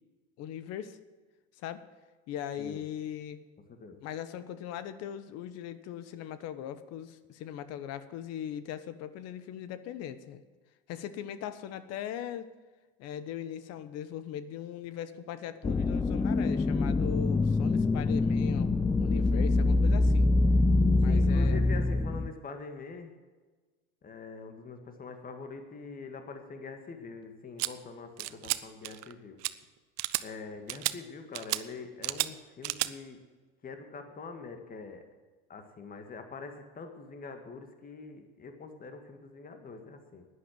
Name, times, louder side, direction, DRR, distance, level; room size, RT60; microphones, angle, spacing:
voice 1, 0.4-1.0 1.6-1.8 2.3-3.4 4.0-10.4 10.9-12.5 13.0-20.3 21.0-21.6, left 10 dB, 60° left, 13 dB, 1.1 m, -40 dB
voice 2, 3.7-4.0 21.1-23.1 24.0-29.4 30.2-33.2 33.6-35.0 35.5-40.3, left 4 dB, 30° left, 6 dB, 1.9 m, -44 dB
sound 1, 15.6-22.3, left 3 dB, 10° left, 0.4 m, -25 dB
sound 2, 27.6-27.7 28.2-28.6 28.8-29.1 29.4-29.5 30.0-30.2 30.7-30.9 31.4-31.6 32.0-32.3 32.6-32.9, right 20 dB, 65° right, 0.7 m, -31 dB
11.0 x 10.0 x 7.6 m, 1.3 s
supercardioid pair, 100°, 29 cm